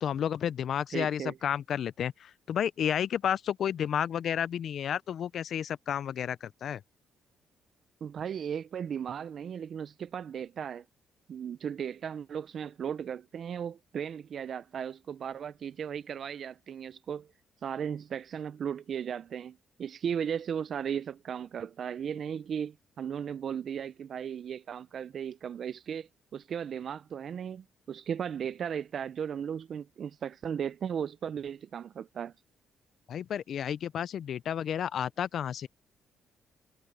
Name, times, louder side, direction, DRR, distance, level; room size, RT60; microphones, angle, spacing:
voice 1, 0.0-6.8 33.1-35.7, left 9 dB, 65° left, 0.4 m, -31 dB
voice 2, 0.9-1.3 8.0-10.8 11.3-17.3 17.6-32.3, right 8 dB, 55° right, 0.4 m, -36 dB
cardioid pair, 90°, 0 cm